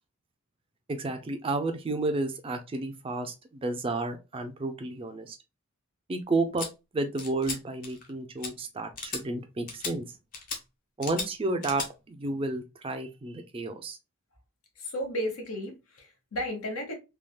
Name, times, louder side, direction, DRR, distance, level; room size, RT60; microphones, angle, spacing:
voice 1, 0.9-5.4 6.1-6.7 6.9-10.1 11.0-14.0, right 2 dB, 25° right, 0.4 m, -31 dB
sound 1, 6.6-6.7 7.2-7.6 7.8-8.1 8.4-8.5 9.0-9.2 9.7-9.9 10.3-10.6 11.0-11.3 11.6-11.9, left 4 dB, 40° left, 0.7 m, -35 dB
voice 2, 14.8-16.9, equal, 75° left, 1.0 m, -34 dB
3.4 x 2.2 x 2.2 m
head